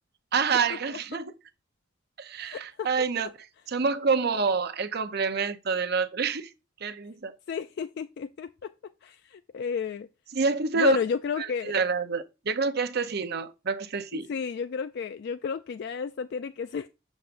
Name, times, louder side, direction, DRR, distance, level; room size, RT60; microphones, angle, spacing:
voice 1, 0.3-1.3 2.2-3.3 3.7-6.5 6.8-7.3 10.3-11.0 11.4-14.3, right 5 dB, 55° right, 0.7 m, -27 dB
voice 2, 2.4-2.9 3.2-3.3 7.5-8.7 9.0-10.1 10.7-11.7 14.1-16.9, left 6 dB, 55° left, 0.3 m, -32 dB
7.1 x 6.6 x 2.6 m
head